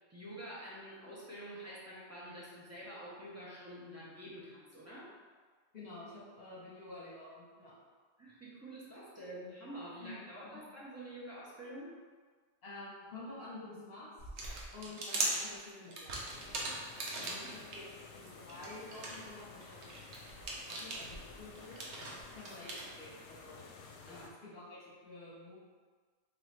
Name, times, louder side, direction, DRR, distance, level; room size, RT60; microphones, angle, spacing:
voice 1, 0.0-5.1 8.2-11.9 17.1-17.5 24.1-24.3, right 1 dB, 15° right, -8 dB, 0.7 m, -48 dB
voice 2, 5.7-7.7 10.0-10.1 10.4-10.6 12.6-14.1 14.7-16.1 16.5-16.8 17.2-19.9 20.6-21.8 22.3-23.7 24.0-25.6, left 2 dB, 55° left, -6 dB, 1.5 m, -50 dB
sound 1, 14.2-17.7 18.2-22.8, right 2 dB, 70° right, 1.0 m, -40 dB
sound 2, 16.3-24.3, left 4 dB, 85° left, 0.9 m, -53 dB
3.6 x 3.3 x 3.2 m, 1.5 s
omnidirectional pair, 1.2 m